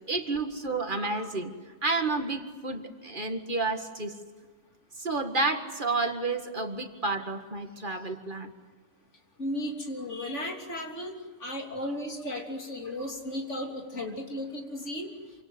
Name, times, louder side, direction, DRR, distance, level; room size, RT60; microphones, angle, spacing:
voice 1, 0.1-4.1 5.0-8.5, right 3 dB, 45° right, 6 dB, 2.0 m, -30 dB
voice 2, 9.4-15.1, left 1 dB, 80° left, 2 dB, 3.6 m, -35 dB
27.5 x 25.5 x 8.0 m, 1.4 s
omnidirectional pair, 1.2 m